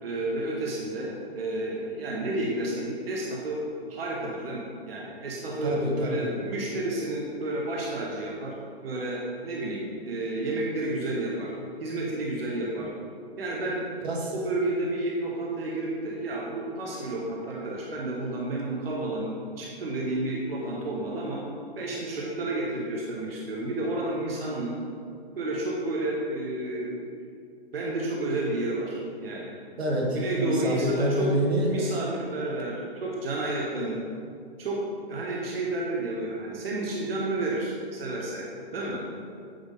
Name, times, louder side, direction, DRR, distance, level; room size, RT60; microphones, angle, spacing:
voice 1, 0.0-3.6 3.9-8.5 8.8-11.5 11.8-12.9 13.4-13.8 14.3-21.4 21.7-24.7 25.3-27.1 27.7-29.6 30.1-31.3 31.7-34.0 34.6-34.8 35.1-38.5 38.7-39.0, right 2 dB, 65° right, -3 dB, 1.2 m, -31 dB
voice 2, 5.6-6.4 14.0-14.3 29.8-31.9 33.7-33.9, right 1 dB, 90° right, -1 dB, 1.4 m, -27 dB
8.7 x 3.6 x 3.7 m, 2.3 s
hypercardioid pair, 165°, 31 cm